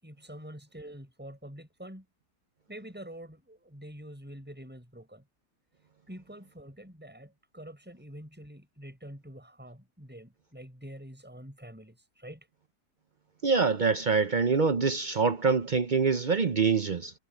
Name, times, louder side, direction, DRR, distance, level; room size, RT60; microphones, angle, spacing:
voice 1, 0.0-2.0 2.7-5.2 6.1-12.5, right 1 dB, 5° right, 6.7 m, -46 dB
voice 2, 13.4-17.1, right 5 dB, 60° right, 0.5 m, -25 dB
omnidirectional pair, 1.8 m